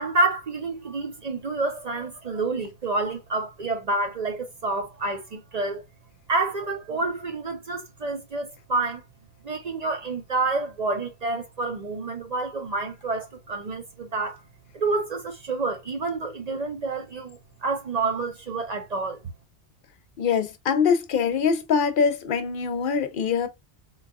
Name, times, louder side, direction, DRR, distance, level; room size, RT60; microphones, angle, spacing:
voice 1, 0.0-5.8 6.3-9.0 9.4-14.4 14.7-19.2, right 3 dB, 45° right, 0.6 m, -28 dB
voice 2, 20.2-23.5, left 6 dB, 60° left, 0.7 m, -23 dB
3.9 x 2.3 x 2.2 m
omnidirectional pair, 1.1 m